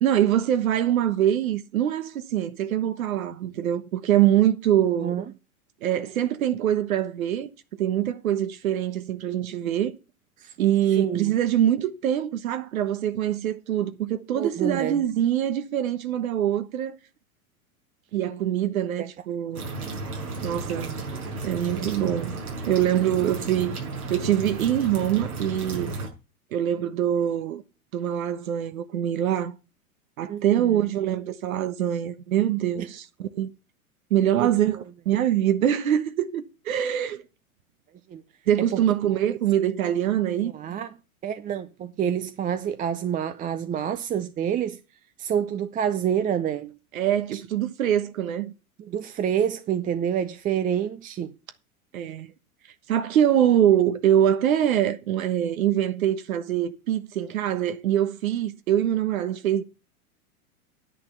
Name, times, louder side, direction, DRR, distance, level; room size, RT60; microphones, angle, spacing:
voice 1, 0.0-5.1 5.8-7.5 7.8-9.9 10.6-17.0 18.1-19.6 20.4-21.0 21.4-22.4 22.7-23.8 24.1-26.0 26.5-27.6 27.9-29.5 30.2-33.5 34.1-34.8 35.0-37.2 38.5-40.5 46.9-48.5 51.9-52.3 52.9-59.6, right 11 dB, 70° right, 1.3 m, -24 dB
voice 2, 11.0-11.3 14.3-15.0 19.0-19.1 20.7-21.0 21.7-21.9 30.3-30.8 32.8-32.9 34.4-34.5 38.1-38.2 38.7-38.8 40.4-40.9 41.2-44.8 45.2-46.7 47.3-47.4 48.8-51.3, right 9 dB, 20° right, 0.6 m, -28 dB
sound 1, 19.5-26.1, right 3 dB, 85° right, 5.8 m, -33 dB
10.0 x 8.9 x 5.8 m
hypercardioid pair, 100°, 44 cm